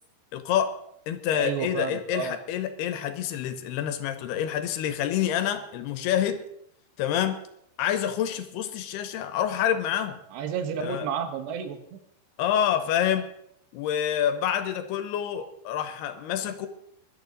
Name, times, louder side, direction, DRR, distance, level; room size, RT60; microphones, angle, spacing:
voice 1, 0.3-0.7 1.1-6.4 7.0-7.4 7.8-10.2 10.8-11.1 12.4-13.3 13.7-16.7, left 10 dB, 75° left, 10 dB, 2.8 m, -27 dB
voice 2, 1.3-2.4 10.3-12.0, right 7 dB, 80° right, 8 dB, 3.4 m, -31 dB
20.0 x 12.0 x 3.9 m, 0.74 s
omnidirectional pair, 4.9 m